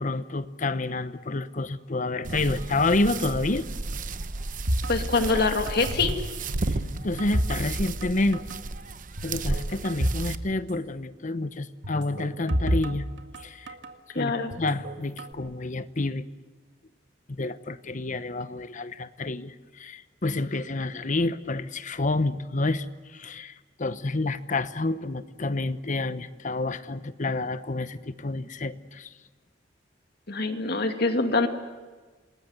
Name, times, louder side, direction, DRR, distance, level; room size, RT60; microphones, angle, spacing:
voice 1, 0.0-3.7 7.0-8.4 9.2-13.1 13.4-13.7 14.2-16.3 17.4-29.1, left 2 dB, 45° left, 13 dB, 1.0 m, -29 dB
sound 1, 2.2-10.3, right 2 dB, 45° right, 0.9 m, -33 dB
sound 2, 4.7-6.2 6.5-8.1 8.3-8.6 9.2-10.3 10.6-10.7 11.8-13.9 14.5-15.3, right 1 dB, 75° right, 1.9 m, -30 dB
voice 2, 4.9-6.1 14.1-14.5 30.3-31.5, left 3 dB, 60° left, 6 dB, 2.4 m, -24 dB
28.0 x 20.0 x 8.1 m, 1.4 s
head